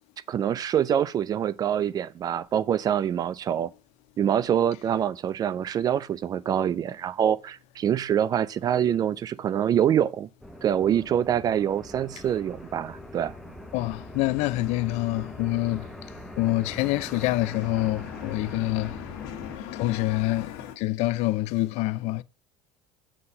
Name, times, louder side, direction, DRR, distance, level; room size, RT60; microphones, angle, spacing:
voice 1, 0.3-3.7 4.2-10.3 10.6-13.3, right 9 dB, 30° right, 0.4 m, -25 dB
sound 1, 8.1-9.4 9.6-20.7, left 10 dB, 75° left, 1.5 m, -43 dB
sound 2, 10.4-19.6, equal, ahead, 0.8 m, -43 dB
voice 2, 13.7-15.9 16.4-19.1 19.7-22.2, left 17 dB, 60° left, 0.4 m, -26 dB
7.7 x 4.2 x 5.4 m
cardioid pair, 140°, 13 cm